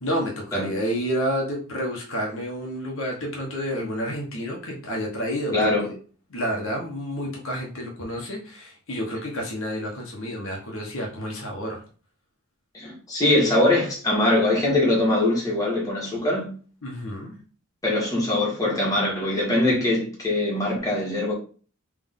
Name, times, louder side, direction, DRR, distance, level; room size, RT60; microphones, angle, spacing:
voice 1, 0.0-5.5 5.8-5.9 6.3-11.8 16.8-17.3, equal, 65° left, 1.1 m, -29 dB
voice 2, 5.5-5.9 12.7-16.5 17.8-21.3, left 1 dB, 15° left, 1.6 m, -22 dB
3.6 x 3.3 x 3.6 m
head